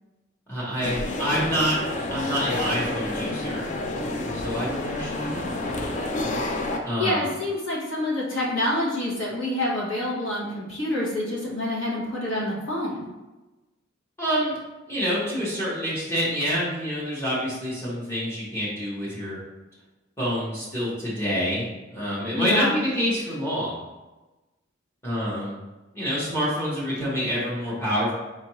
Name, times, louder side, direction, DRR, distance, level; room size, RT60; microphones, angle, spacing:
voice 1, 0.5-1.8 2.1-3.7 4.3-5.5 6.8-7.2 14.2-14.6 14.9-19.4 20.2-21.7 21.9-23.8 25.0-25.6 25.9-28.1, equal, 15° left, -7 dB, 1.0 m, -27 dB
sound 1, 0.8-6.8, left 2 dB, 35° left, 0.4 m, -29 dB
voice 2, 7.0-13.0 22.3-22.8, left 1 dB, 65° left, -5 dB, 1.1 m, -27 dB
4.5 x 2.5 x 3.0 m, 1.1 s
head